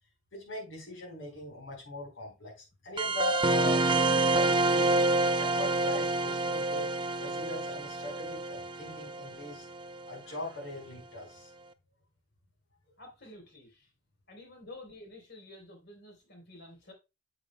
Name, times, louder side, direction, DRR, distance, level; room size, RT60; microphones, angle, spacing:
voice 1, 0.3-4.9 5.4-6.9 7.2-9.7 10.1-11.5, left 2 dB, 75° left, 4.5 m, -40 dB
sound 1, 3.0-10.1, right 2 dB, 25° right, 0.5 m, -28 dB
voice 2, 13.0-13.9 14.3-16.9, left 2 dB, 60° left, 3.6 m, -50 dB
8.6 x 7.8 x 2.2 m
head